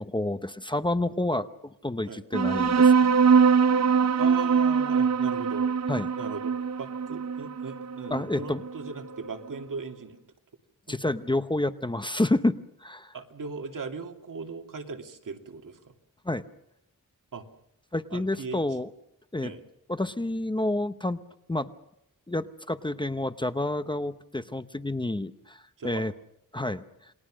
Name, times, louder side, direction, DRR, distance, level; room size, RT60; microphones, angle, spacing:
voice 1, 0.0-3.2 5.9-6.1 8.1-8.6 10.9-13.1 16.2-16.4 17.9-18.9 19.3-19.5 19.9-21.2 21.5-21.7 22.3-26.1 26.5-26.8, left 1 dB, 15° left, 10 dB, 0.8 m, -29 dB
sound 1, 2.3-9.3, right 6 dB, 50° right, 0.8 m, -23 dB
voice 2, 4.2-5.7 6.2-10.2 10.9-11.0 13.1-15.8 17.3-17.4 18.1-18.6 19.4-19.6 25.8-26.0, right 5 dB, 70° right, 4 dB, 2.5 m, -38 dB
29.0 x 21.0 x 6.3 m, 0.81 s
wide cardioid pair, 145°, 33 cm